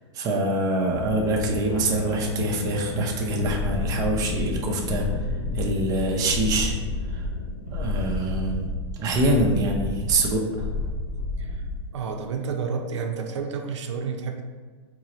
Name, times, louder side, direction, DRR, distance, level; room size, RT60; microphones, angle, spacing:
voice 1, 0.1-5.1 5.5-6.7 7.1-7.2 7.7-8.7 8.9-10.7, right 2 dB, 25° right, 0 dB, 0.6 m, -25 dB
sound 1, 0.9-8.6, left 2 dB, 55° left, 0.5 m, -35 dB
sound 2, 3.4-11.8, left 2 dB, 80° left, 1.1 m, -30 dB
voice 2, 11.9-14.4, right 5 dB, 80° right, 4 dB, 0.5 m, -30 dB
4.5 x 2.0 x 3.8 m, 1.5 s
supercardioid pair, 145°, 15 cm